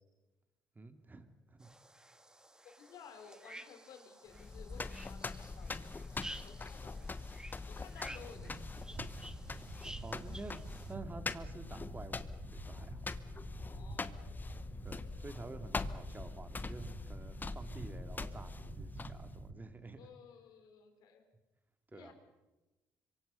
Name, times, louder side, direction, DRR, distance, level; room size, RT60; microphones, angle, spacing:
voice 1, 0.7-1.7 10.0-10.5 10.9-13.1 14.8-20.1 21.9-22.1, right 3 dB, 25° right, 8 dB, 2.6 m, -50 dB
sound 1, 1.6-10.9, right 1 dB, 10° right, 1.7 m, -53 dB
voice 2, 2.6-6.1 6.4-7.1 7.7-9.0 13.6-14.6 19.9-21.2 21.9-22.1, left 7 dB, 75° left, 5 dB, 4.1 m, -56 dB
sound 2, 4.3-19.4, left 3 dB, 25° left, 1.1 m, -43 dB
sound 3, 8.1-19.5, right 4 dB, 55° right, 6.2 m, -50 dB
26.0 x 24.0 x 5.6 m, 1.1 s
supercardioid pair, 75°, 7 cm